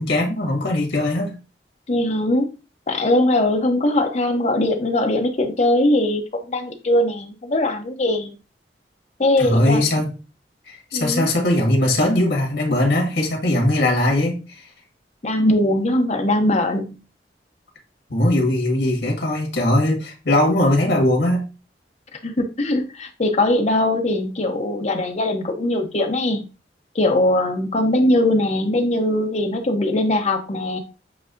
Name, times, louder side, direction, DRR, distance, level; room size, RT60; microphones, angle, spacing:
voice 1, 0.0-1.4 9.4-10.1 10.7-14.7 18.1-21.4, left 1 dB, 80° left, 1.8 m, -20 dB
voice 2, 1.9-2.5 2.9-8.4 9.2-9.8 10.9-11.3 15.2-17.0 22.2-26.5 26.9-30.8, left 1 dB, 40° left, 0.7 m, -20 dB
7.8 x 2.7 x 2.5 m
head